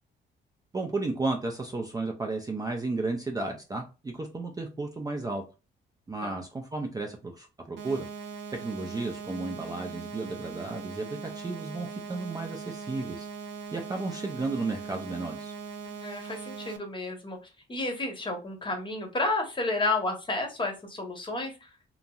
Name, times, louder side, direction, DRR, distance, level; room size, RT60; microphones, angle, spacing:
voice 1, 0.7-5.4 6.1-8.1 8.5-11.0 11.3-13.3 13.7-15.5, right 3 dB, 20° right, 2 dB, 0.4 m, -33 dB
sound 1, 7.8-16.8, right 5 dB, 65° right, 0.6 m, -40 dB
voice 2, 16.0-17.4 17.7-21.7, left 2 dB, 25° left, 4 dB, 0.9 m, -31 dB
2.9 x 2.6 x 2.3 m, 0.30 s
cardioid pair, 90°, 20 cm